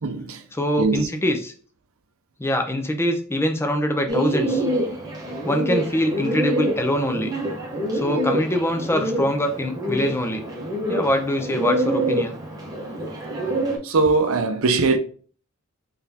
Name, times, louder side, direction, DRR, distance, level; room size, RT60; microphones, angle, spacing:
voice 1, 0.0-0.5 0.8-1.1 13.8-15.0, right 3 dB, 65° right, 0.6 m, -21 dB
voice 2, 0.6-1.5 2.4-4.6 5.4-7.3 7.9-10.4 10.9-12.4, equal, 10° left, 0.5 m, -23 dB
Bird, 4.1-13.8, right 1 dB, 15° right, 1.0 m, -26 dB
4.1 x 3.3 x 2.8 m
head